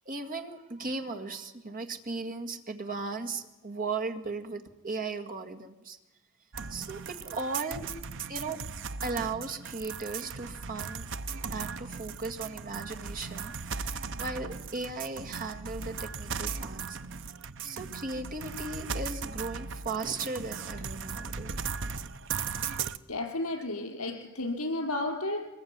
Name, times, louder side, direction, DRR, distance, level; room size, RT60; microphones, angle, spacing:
voice 1, 0.1-6.0 6.7-7.9 8.3-8.6 9.0-11.1 11.5-17.0 17.6-22.1, right 3 dB, 40° right, 4 dB, 2.0 m, -37 dB
sound 1, 6.5-23.0, right 5 dB, 60° right, 0.9 m, -37 dB
voice 2, 23.1-25.4, left 2 dB, 80° left, 2 dB, 5.1 m, -32 dB
24.0 x 21.0 x 9.5 m, 1.0 s
head